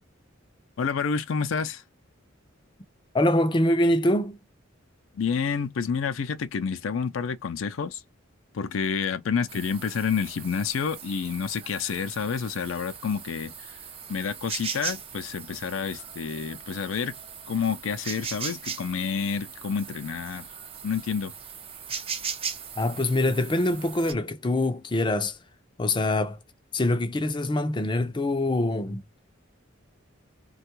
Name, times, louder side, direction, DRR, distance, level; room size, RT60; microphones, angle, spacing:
voice 1, 0.8-1.8 5.1-8.0 8.5-13.8 14.1-17.1 17.5-20.5 20.8-21.3, left 6 dB, 80° left, 0.4 m, -29 dB
voice 2, 3.1-4.4 22.8-25.4 25.8-26.4 26.7-29.0, left 1 dB, 25° left, 0.4 m, -24 dB
sound 1, 9.5-24.1, right 6 dB, 30° right, 0.5 m, -39 dB
3.3 x 2.3 x 2.9 m
head